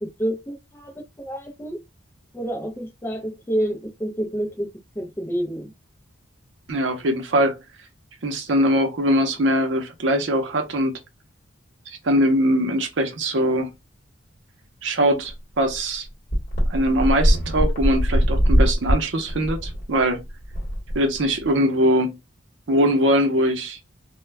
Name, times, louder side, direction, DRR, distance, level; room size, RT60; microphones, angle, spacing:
voice 1, 0.0-1.8 2.3-4.7 5.0-5.7, right 1 dB, 10° left, 0.4 m, -28 dB
voice 2, 6.7-7.6 8.2-10.9 11.9-13.7 14.8-16.1 16.7-20.2 20.9-22.2 22.7-23.8, equal, 70° right, 0.6 m, -21 dB
sound 1, 15.3-15.4 15.7-15.8 16.3-21.5, equal, 40° left, 1.1 m, -21 dB
2.2 x 2.1 x 3.3 m
head